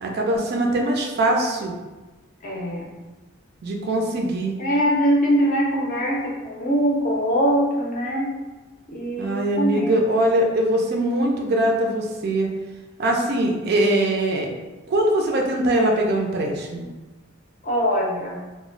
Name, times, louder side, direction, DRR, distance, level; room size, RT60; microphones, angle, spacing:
voice 1, 0.0-1.7 3.6-4.5 9.2-12.5 13.0-14.5 14.9-16.9, right 1 dB, 45° right, 1 dB, 0.3 m, -22 dB
voice 2, 2.4-2.9 4.6-8.3 8.9-10.0 17.6-18.4, equal, 35° left, -3 dB, 0.5 m, -22 dB
2.1 x 2.0 x 3.7 m, 1.2 s
head